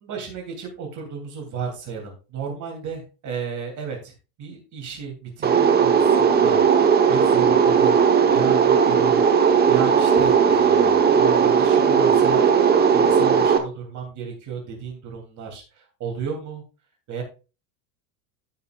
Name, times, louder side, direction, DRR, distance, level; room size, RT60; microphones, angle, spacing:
voice 1, 0.0-8.0 8.2-16.6 17.1-17.2, right 6 dB, 35° right, 1 dB, 2.8 m, -34 dB
sound 1, 5.4-13.6, right 6 dB, 20° right, 1.0 m, -17 dB
14.5 x 5.7 x 2.3 m, 0.32 s
supercardioid pair, 140°, 50 cm